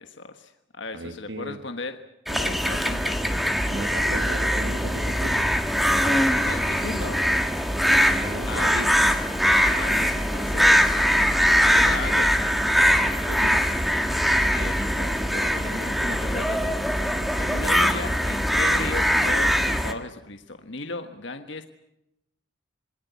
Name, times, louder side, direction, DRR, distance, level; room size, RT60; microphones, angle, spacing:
voice 1, 0.0-2.0 2.3-3.2 6.5-7.2 8.4-9.1 9.7-10.8 11.7-12.3 14.5-17.0 17.4-21.6, left 3 dB, 60° left, 7 dB, 1.4 m, -36 dB
voice 2, 0.9-1.6 3.6-5.5 5.9-6.3 8.1-9.2 12.7-13.6, right 2 dB, 60° right, 7 dB, 1.4 m, -36 dB
sound 1, 2.3-19.9, equal, ahead, 1.6 m, -22 dB
27.0 x 22.0 x 8.3 m, 0.83 s
head